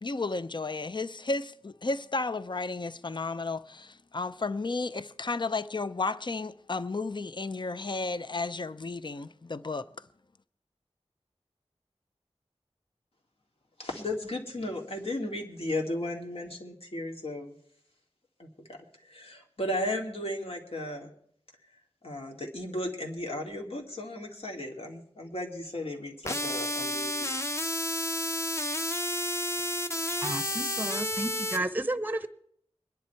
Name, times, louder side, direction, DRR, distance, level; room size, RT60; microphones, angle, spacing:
voice 1, 0.0-10.1, left 3 dB, 45° left, 0.5 m, -33 dB
voice 2, 13.8-17.5 18.4-21.1 22.0-27.3, left 1 dB, 60° left, 2.3 m, -35 dB
sound 1, 26.3-31.6, left 1 dB, 25° left, 1.0 m, -31 dB
voice 3, 30.2-32.3, right 2 dB, 15° right, 0.7 m, -32 dB
23.5 x 10.5 x 4.5 m
wide cardioid pair, 65°, 11 cm